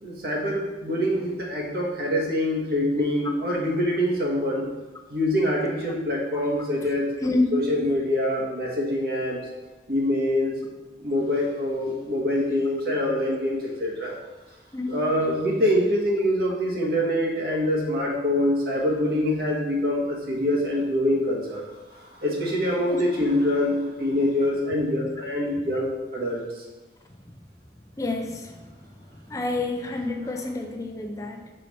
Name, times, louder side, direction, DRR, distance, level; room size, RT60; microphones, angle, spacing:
voice 1, 0.0-4.7 5.1-7.1 7.5-9.4 9.9-10.5 11.0-14.1 14.9-21.6 22.2-26.4, left 1 dB, 55° right, -3 dB, 1.5 m, -25 dB
voice 2, 7.2-7.5 14.7-15.0 22.9-23.0 27.2-27.3 27.9-28.6 29.1-31.5, left 2 dB, 20° left, 4 dB, 0.5 m, -28 dB
5.6 x 4.8 x 4.1 m, 1.2 s
head